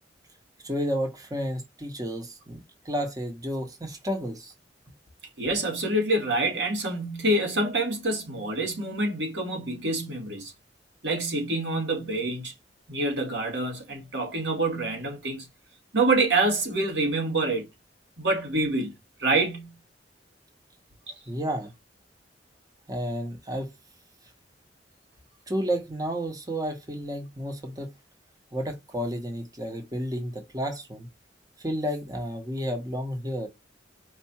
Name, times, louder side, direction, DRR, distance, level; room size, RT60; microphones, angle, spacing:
voice 1, 0.6-4.5 21.3-21.7 22.9-23.7 25.5-27.9 28.5-31.1 31.6-33.5, equal, 20° right, 1.1 m, -31 dB
voice 2, 5.4-10.5 11.0-12.5 12.9-15.5 15.9-17.7 18.2-18.9 19.2-19.8, right 2 dB, 80° right, 2.0 m, -26 dB
4.7 x 2.5 x 4.3 m
head